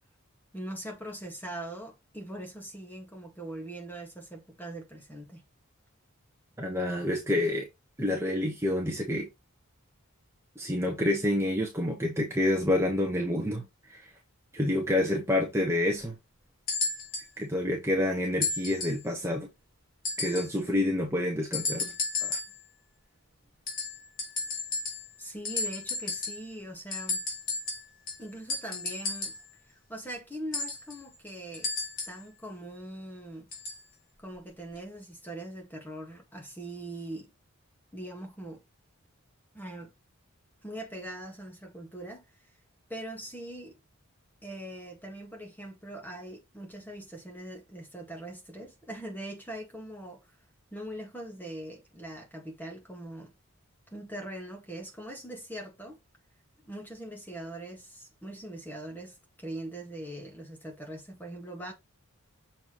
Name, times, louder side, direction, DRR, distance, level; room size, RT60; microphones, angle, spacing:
voice 1, 0.5-5.4 25.2-27.2 28.2-29.3 29.7-31.7 32.1-33.5 34.2-37.3 37.9-38.6 39.5-39.9 40.6-42.3 42.9-43.8 44.4-50.3 50.7-53.3 53.9-56.0 56.6-61.7, right 1 dB, 10° left, 1.8 m, -41 dB
voice 2, 6.6-7.7 8.0-9.3 10.6-13.6 13.9-14.0 14.5-16.1 17.4-19.5 20.2-21.9 22.2-22.4, left 1 dB, 10° right, 1.2 m, -28 dB
sound 1, 16.7-17.3 18.4-19.1 20.0-20.6 21.5-22.6 23.7-25.2 25.4-26.5 26.9-29.5 30.5-32.3 33.5-33.8 34.8-34.9, left 3 dB, 40° left, 3.2 m, -33 dB
6.9 x 4.5 x 3.1 m
head